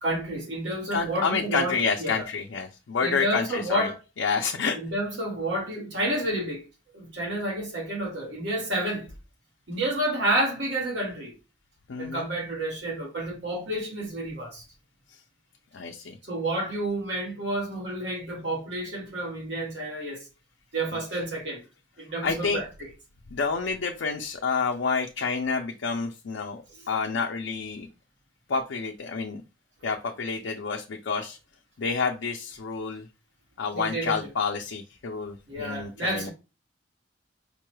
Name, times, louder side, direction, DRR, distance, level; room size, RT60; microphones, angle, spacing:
voice 1, 0.0-2.3 3.0-4.0 4.7-6.6 6.9-9.1 9.7-11.3 12.0-14.6 16.2-20.2 20.7-21.6 22.0-22.9 26.8-26.9 33.7-34.3 35.5-36.3, right 1 dB, 75° right, 1.7 m, -30 dB
voice 2, 0.9-4.8 11.9-12.3 15.7-16.2 20.9-21.2 22.2-22.6 23.3-26.6 26.9-27.9 28.5-29.4 29.8-31.4 31.8-33.1 33.6-36.3, left 5 dB, 85° left, 0.5 m, -29 dB
5.2 x 2.2 x 3.1 m
head